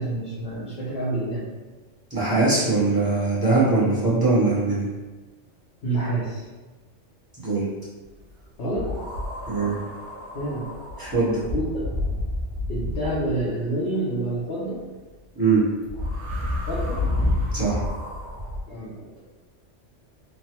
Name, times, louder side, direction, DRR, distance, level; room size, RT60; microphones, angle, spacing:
voice 1, 0.0-1.5 5.8-6.5 8.6-8.9 10.3-10.7 11.5-11.8 12.7-14.8 16.7-17.0 18.7-19.2, right 2 dB, 60° left, -9 dB, 0.9 m, -28 dB
voice 2, 2.1-4.9 7.4-7.6 9.5-9.8 11.0-11.4 15.3-15.7 17.5-17.8, right 3 dB, 20° right, -10 dB, 0.8 m, -21 dB
sound 1, 8.7-13.5 15.8-18.6, left 1 dB, 75° right, 1.0 m, -29 dB
3.2 x 2.2 x 2.8 m, 1.2 s
omnidirectional pair, 1.2 m